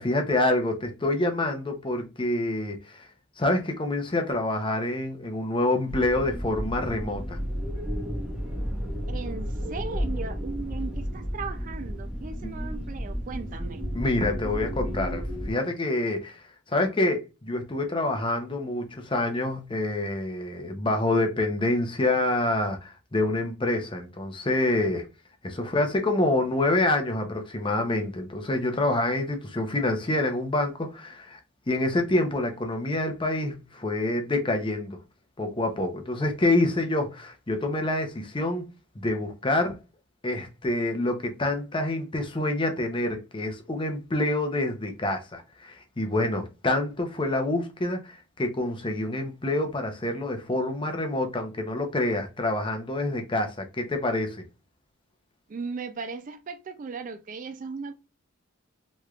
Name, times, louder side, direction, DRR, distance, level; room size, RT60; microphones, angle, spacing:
voice 1, 0.0-3.1 3.4-7.4 12.4-12.5 13.9-25.1 25.4-31.4 31.7-35.0 35.4-38.6 38.9-39.8 40.2-54.4, left 2 dB, 25° left, 0.6 m, -27 dB
sound 1, 5.9-15.5, equal, 5° right, 0.9 m, -32 dB
voice 2, 9.1-13.8 55.5-58.0, right 4 dB, 40° right, 0.3 m, -37 dB
3.4 x 3.1 x 2.3 m
head